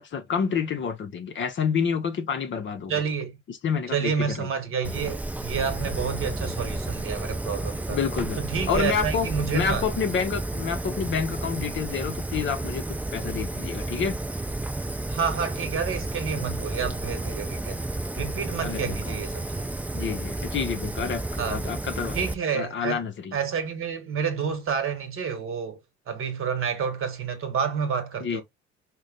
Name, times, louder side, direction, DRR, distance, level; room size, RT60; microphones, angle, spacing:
voice 1, 0.0-2.9 3.5-4.5 7.9-8.4 8.7-9.3 9.5-12.8 13.1-14.2 18.6-19.1 19.9-22.2 22.5-23.4 28.2-28.4, left 6 dB, 35° left, 0.8 m, -28 dB
voice 2, 2.9-3.3 3.9-8.0 8.4-9.8 15.1-17.8 18.2-19.7 20.5-20.6 21.4-21.6 22.1-23.0 23.3-25.8 26.1-28.4, right 6 dB, 40° right, 1.3 m, -29 dB
Fire, 4.8-22.3, right 2 dB, 5° right, 0.4 m, -31 dB
5.1 x 2.2 x 3.7 m
figure-of-eight pair, 55°, 34 cm